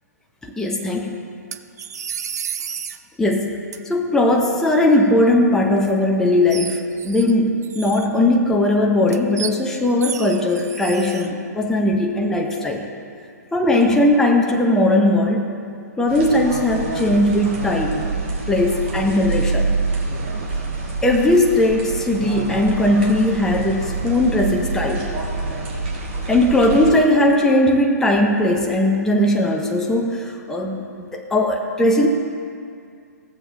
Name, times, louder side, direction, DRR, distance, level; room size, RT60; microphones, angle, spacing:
voice 1, 0.4-1.2 3.2-3.6 3.9-12.8 13.5-15.6 16.0-18.1 18.5-19.7 21.0-25.1 26.3-32.1, left 1 dB, 5° left, 1 dB, 0.7 m, -18 dB
sound 1, 1.5-3.0 3.7-3.8 5.8-5.9 6.5-7.3 7.6-8.3 9.1-9.6 10.0-11.3, right 7 dB, 65° right, 0.5 m, -31 dB
sound 2, 16.1-26.9, right 3 dB, 40° right, 1.9 m, -26 dB
16.0 x 7.3 x 2.8 m, 2.3 s
figure-of-eight pair, 125°, 10 cm